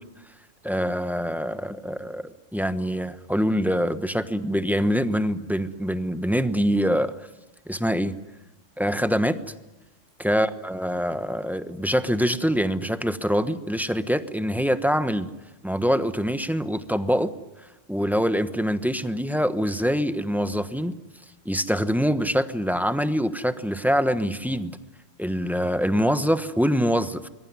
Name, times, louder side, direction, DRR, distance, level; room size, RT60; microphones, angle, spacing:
voice 1, 0.6-7.1 7.7-8.1 8.8-9.4 10.2-15.3 15.6-17.3 17.9-21.0 21.4-24.8 25.2-27.3, equal, ahead, 11 dB, 1.0 m, -24 dB
25.5 x 22.0 x 9.5 m, 1.0 s
omnidirectional pair, 1.3 m